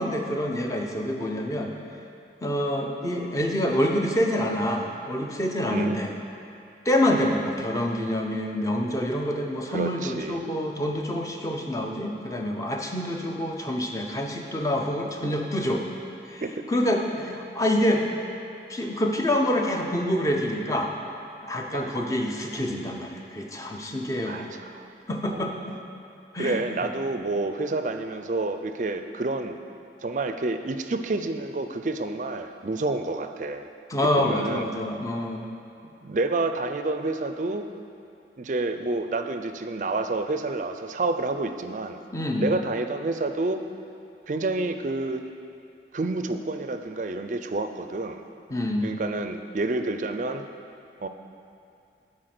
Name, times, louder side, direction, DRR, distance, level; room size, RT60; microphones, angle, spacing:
voice 1, 0.0-1.7 2.4-6.1 6.8-15.8 16.3-16.4 16.7-18.2 18.7-20.9 21.4-24.6 25.1-25.8 26.3-26.6 33.9-35.5 42.1-42.5 48.5-48.9, left 1 dB, 20° left, 1 dB, 0.7 m, -26 dB
voice 2, 9.7-10.4 16.4-16.5 21.7-22.0 24.3-24.9 25.2-25.5 26.4-29.6 30.0-33.7 34.2-34.6 36.0-37.7 38.4-42.0 42.4-43.6 44.3-45.2 45.9-48.2 48.8-50.4 51.0-51.1, right 2 dB, 45° right, 7 dB, 0.4 m, -29 dB
11.5 x 4.2 x 6.0 m, 2.5 s
head